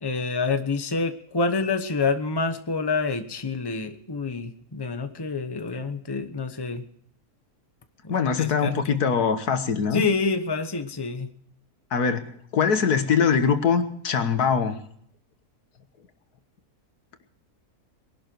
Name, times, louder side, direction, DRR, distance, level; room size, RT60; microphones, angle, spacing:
voice 1, 0.0-6.8 8.0-9.0 9.9-11.3, left 4 dB, 20° left, 8 dB, 1.0 m, -27 dB
voice 2, 8.1-10.0 11.9-14.8, left 6 dB, 90° left, 9 dB, 1.9 m, -23 dB
21.5 x 12.0 x 4.6 m, 0.67 s
omnidirectional pair, 1.6 m